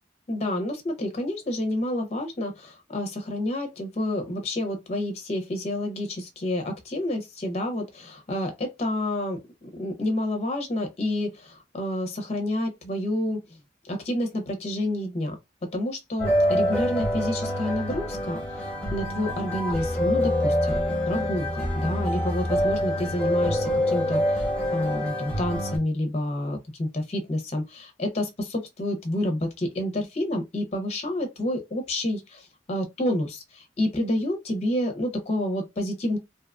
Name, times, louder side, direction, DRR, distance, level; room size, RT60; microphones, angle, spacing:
voice 1, 0.3-13.4 13.8-15.4 15.6-36.2, left 1 dB, 35° left, 0.6 m, -29 dB
sound 1, 16.2-25.8, left 1 dB, 5° left, 0.8 m, -26 dB
2.7 x 2.3 x 2.3 m
head